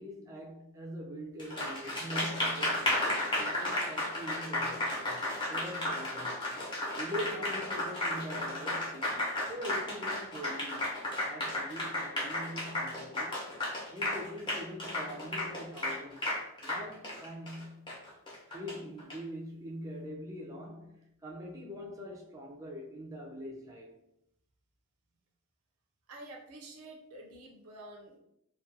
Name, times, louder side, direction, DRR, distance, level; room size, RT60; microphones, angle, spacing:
voice 1, 0.0-6.4 6.9-13.4 13.9-16.2 16.6-17.9 18.4-24.0, equal, 15° right, 0.4 m, -43 dB
Applause, 1.4-19.1, left 1 dB, 20° left, 0.7 m, -33 dB
voice 2, 26.1-28.2, right 1 dB, 80° right, 0.5 m, -49 dB
2.4 x 2.2 x 2.6 m
head